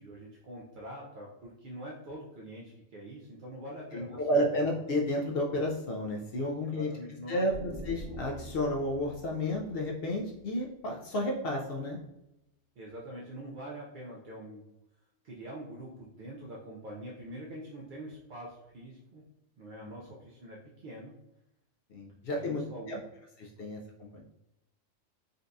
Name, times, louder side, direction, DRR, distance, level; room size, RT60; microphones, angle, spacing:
voice 1, 0.0-4.4 6.6-7.4 12.8-14.7 15.2-19.2 19.6-21.1 22.3-23.0, right 1 dB, 60° right, -3 dB, 0.5 m, -44 dB
voice 2, 3.9-6.9 7.3-12.0 19.8-19.9 21.9-23.0 23.4-24.2, left 1 dB, 65° left, -1 dB, 0.6 m, -32 dB
sound 1, 7.5-11.1, left 1 dB, 35° left, 0.9 m, -46 dB
3.9 x 2.3 x 2.5 m, 0.88 s
omnidirectional pair, 1.4 m